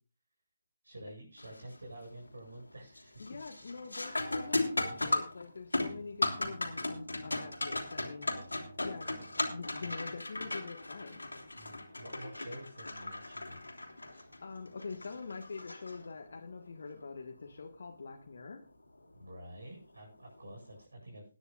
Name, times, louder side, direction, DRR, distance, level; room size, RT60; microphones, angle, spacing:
voice 1, 0.8-3.2 4.8-5.0 8.2-8.5 9.8-9.9 11.5-13.6 14.1-14.3 19.1-21.2, right 1 dB, 75° right, -1 dB, 7.4 m, -49 dB
sound 1, 1.4-1.8 2.2-2.6 2.9-16.5 19.0-19.1 19.9-20.1, left 2 dB, 80° left, 2.7 m, -37 dB
voice 2, 3.2-8.3 8.8-11.2 14.4-18.6, left 4 dB, 60° left, 3 dB, 1.5 m, -45 dB
21.0 x 9.9 x 2.5 m, 0.35 s
figure-of-eight pair, 145°, 0 cm